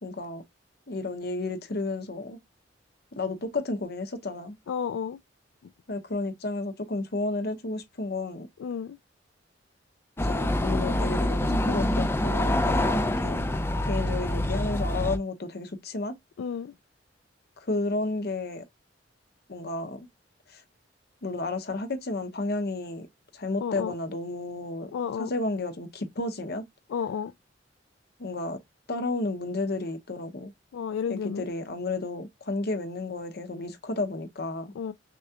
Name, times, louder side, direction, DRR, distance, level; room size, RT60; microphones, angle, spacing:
voice 1, 0.0-0.4 0.9-2.4 3.1-4.6 5.9-8.5 10.2-13.5 13.8-16.2 17.6-18.6 19.5-20.1 20.5-20.6 21.2-23.1 23.3-24.9 25.2-26.6 28.2-28.6 28.9-30.5 31.1-34.7, left 2 dB, 60° left, 1.0 m, -32 dB
voice 2, 4.7-5.2 5.6-5.7 8.6-9.0 16.4-16.7 23.6-24.0 24.9-25.3 26.9-27.3 30.7-31.5 34.7-34.9, left 7 dB, 85° left, 0.3 m, -32 dB
sound 1, 10.2-15.2, left 1 dB, 15° left, 0.4 m, -26 dB
6.2 x 2.3 x 2.8 m
head